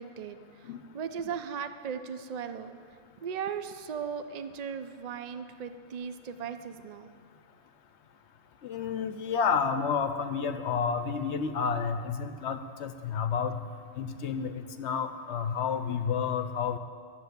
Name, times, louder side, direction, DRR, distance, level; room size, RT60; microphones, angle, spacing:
voice 1, 0.0-2.8 3.2-7.1, right 7 dB, 85° right, 10 dB, 0.3 m, -37 dB
voice 2, 8.6-13.6 14.0-16.8, left 6 dB, 65° left, 9 dB, 0.8 m, -30 dB
12.0 x 7.7 x 8.1 m, 2.1 s
omnidirectional pair, 1.4 m